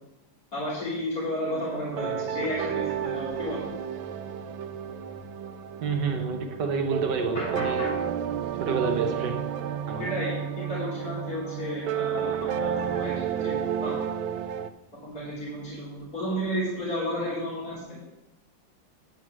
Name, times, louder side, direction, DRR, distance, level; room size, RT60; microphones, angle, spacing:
voice 1, 0.5-3.6 7.3-7.9 10.0-14.0 15.0-17.8, equal, 50° left, -10 dB, 3.4 m, -32 dB
sound 1, 1.5-14.7, right 9 dB, 85° right, 1.4 m, -31 dB
voice 2, 2.0-2.3 5.8-8.0 8.6-9.5 9.9-10.2, right 4 dB, 65° right, 4 dB, 1.4 m, -29 dB
9.9 x 4.8 x 7.3 m, 0.96 s
omnidirectional pair, 2.1 m